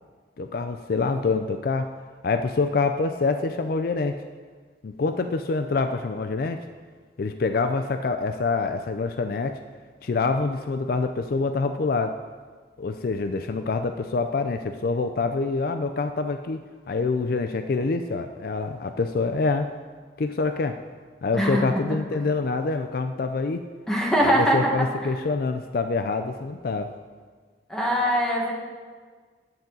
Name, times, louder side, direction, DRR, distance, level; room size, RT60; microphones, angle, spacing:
voice 1, 0.4-1.9 2.2-4.2 4.8-6.6 7.2-9.6 10.0-12.2 12.8-19.7 20.2-20.8 21.2-23.6 24.2-26.9, left 4 dB, 55° left, 8 dB, 0.4 m, -26 dB
voice 2, 21.3-21.6 23.9-24.7 27.7-28.5, equal, 5° left, -2 dB, 1.6 m, -22 dB
10.5 x 8.8 x 3.9 m, 1.5 s
head